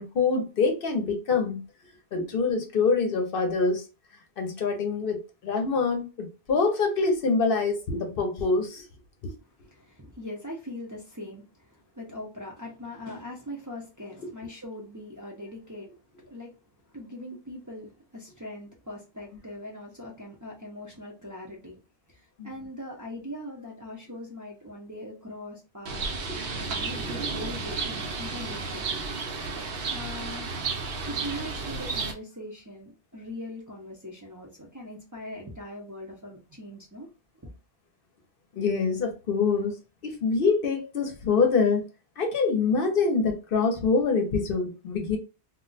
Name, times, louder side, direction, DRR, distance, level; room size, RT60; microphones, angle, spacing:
voice 1, 0.0-1.6 2.1-3.8 4.4-8.9 9.2-9.3 22.4-22.5 26.3-26.4 38.6-39.8 40.0-41.8 42.2-45.2, left 4 dB, 60° left, 0.8 m, -25 dB
voice 2, 9.4-15.9 16.2-16.5 16.9-21.8 22.1-26.1 26.5-28.9 29.9-30.5 31.1-37.1, left 1 dB, 20° right, 0.5 m, -41 dB
Bird, 25.9-32.1, right 4 dB, 70° right, 0.9 m, -32 dB
2.3 x 2.1 x 3.8 m
omnidirectional pair, 1.1 m